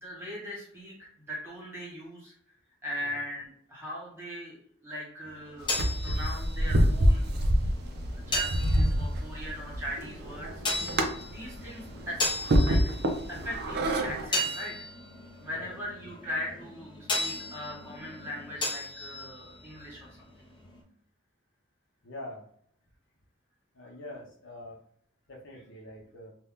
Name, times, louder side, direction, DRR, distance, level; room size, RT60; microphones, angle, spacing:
voice 1, 0.0-2.3 2.8-7.3 8.1-12.3 12.6-12.8 13.3-14.7 15.4-20.1 20.4-20.5, equal, 10° right, -4 dB, 1.3 m, -40 dB
sound 1, 5.3-20.8, left 1 dB, 25° left, 0.6 m, -37 dB
sound 2, 5.6-14.3, equal, 50° right, 0.5 m, -27 dB
voice 2, 22.0-22.4 23.7-24.8 25.3-26.3, left 1 dB, 60° left, -1 dB, 0.7 m, -44 dB
2.7 x 2.2 x 3.5 m, 0.65 s
head